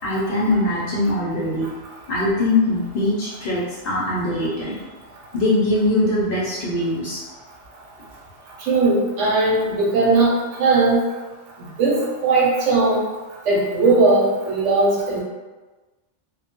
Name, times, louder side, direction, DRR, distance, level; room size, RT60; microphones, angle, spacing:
voice 1, 0.0-1.7 2.1-4.8 5.3-7.2, left 2 dB, 60° left, -7 dB, 0.6 m, -22 dB
voice 2, 8.6-10.3 10.6-11.0 11.8-13.0 13.5-15.2, right 3 dB, 70° right, -4 dB, 1.0 m, -18 dB
2.2 x 2.1 x 2.8 m, 1.2 s
omnidirectional pair, 1.3 m